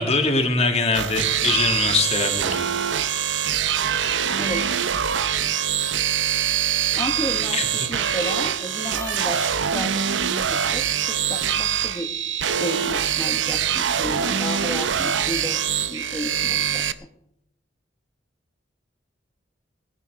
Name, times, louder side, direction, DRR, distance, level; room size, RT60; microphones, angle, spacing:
voice 1, 0.0-2.7 7.5-7.9, left 3 dB, 35° left, 5 dB, 1.9 m, -22 dB
sound 1, 0.9-16.9, right 8 dB, 80° right, 0.7 m, -24 dB
voice 2, 4.4-4.7 7.0-7.6 7.9-10.9 11.3-12.1 12.6-15.6 15.9-16.8, equal, 20° left, 0 dB, 1.3 m, -32 dB
19.0 x 11.0 x 4.7 m, 0.73 s
head